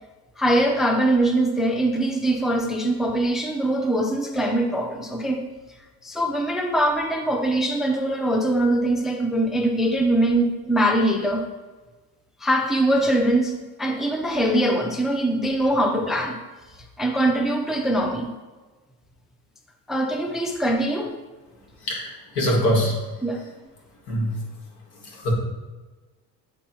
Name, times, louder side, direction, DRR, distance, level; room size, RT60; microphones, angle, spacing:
voice 1, 0.4-5.4 6.0-11.4 12.4-16.4 17.0-18.3 19.9-21.2 23.2-23.4, right 1 dB, ahead, 3 dB, 0.5 m, -22 dB
voice 2, 21.8-23.0 24.1-24.4 25.0-25.3, equal, 80° left, -2 dB, 2.0 m, -23 dB
8.1 x 2.9 x 4.6 m, 1.3 s
cardioid pair, 115°, 39 cm